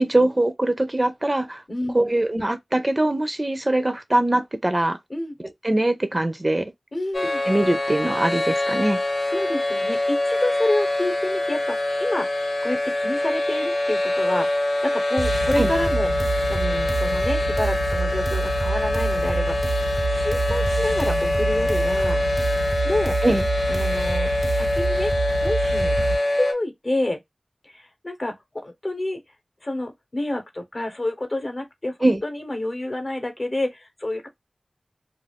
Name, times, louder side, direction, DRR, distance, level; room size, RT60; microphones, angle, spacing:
voice 1, 0.0-1.6 1.9-5.0 5.6-6.7 7.4-9.0 15.6-15.7 23.2-23.4 32.0-32.2, right 1 dB, 25° right, 0.4 m, -22 dB
voice 2, 1.7-2.1 5.1-5.3 6.9-7.4 9.3-12.3 12.6-16.1 16.5-19.7 20.1-22.2 22.8-23.2 23.7-24.3 24.6-25.1 25.4-27.2 27.6-29.2 29.6-32.0 32.2-34.3, left 1 dB, 40° left, 0.8 m, -28 dB
sound 1, 7.1-26.5, left 1 dB, 80° left, 0.7 m, -24 dB
sound 2, 15.2-26.1, right 3 dB, 85° right, 0.6 m, -27 dB
2.4 x 2.3 x 3.4 m
wide cardioid pair, 80°, 0 cm